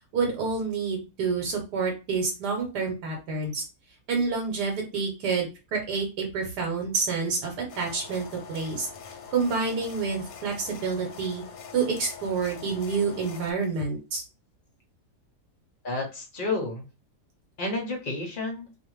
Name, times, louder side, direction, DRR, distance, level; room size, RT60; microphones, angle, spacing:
voice 1, 0.1-3.6 4.1-8.9 9.3-11.4 11.7-14.2, right 4 dB, 80° right, 1 dB, 1.3 m, -28 dB
sound 1, 7.7-13.5, left 6 dB, 70° left, 0.9 m, -44 dB
voice 2, 15.8-16.9 17.6-18.7, left 2 dB, 50° left, 1 dB, 0.6 m, -30 dB
2.5 x 2.5 x 3.0 m, 0.29 s
omnidirectional pair, 1.7 m